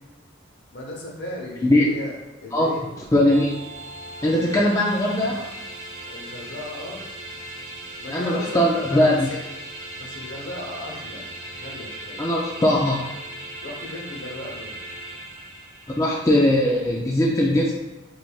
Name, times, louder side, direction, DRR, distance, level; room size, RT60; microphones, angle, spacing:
voice 1, 0.7-2.1 2.4-2.8 4.2-4.7 5.2-5.4 6.1-7.0 8.0-9.4 10.0-12.3 13.6-14.7, left 2 dB, 60° left, -2 dB, 0.9 m, -36 dB
voice 2, 3.1-3.5 4.2-5.3 8.1-9.3 12.2-13.1 16.0-17.8, left 1 dB, 15° left, -3 dB, 0.3 m, -20 dB
sound 1, 3.3-16.4, right 1 dB, 30° right, 0.8 m, -38 dB
3.9 x 3.3 x 2.3 m, 1.0 s
head